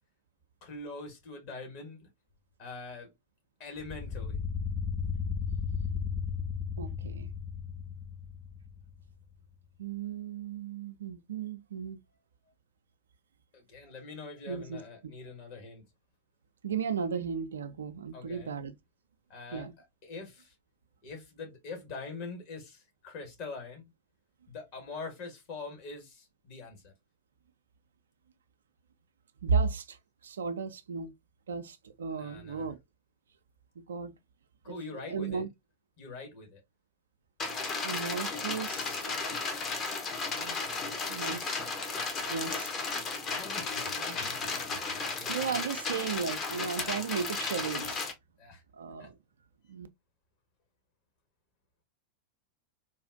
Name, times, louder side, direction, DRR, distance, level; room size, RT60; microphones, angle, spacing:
voice 1, 0.6-2.1 2.6-3.1 3.6-4.4 13.5-15.8 18.1-18.6 19.3-20.5 21.0-23.9 24.5-26.9 32.1-32.7 34.6-35.4 36.0-36.6 43.3-45.8 48.4-48.6 49.0-49.1, left 3 dB, 45° left, 1.4 m, -44 dB
sound 1, 3.8-9.1, left 6 dB, 15° left, 0.3 m, -35 dB
voice 2, 6.8-7.3 9.8-12.0 14.5-15.1 16.6-18.7 19.5-19.7 29.4-30.0 30.2-31.1 31.5-32.8 33.9-34.1 34.7-34.8 35.1-35.5 37.8-39.1 40.3-40.8 41.1-41.6 42.3-42.7 45.3-48.0 48.7-49.1 49.7-49.9, right 6 dB, 65° right, 0.3 m, -35 dB
sound 2, 37.4-48.1, left 4 dB, 30° left, 0.8 m, -34 dB
3.9 x 2.4 x 2.4 m
figure-of-eight pair, 90°, 0 cm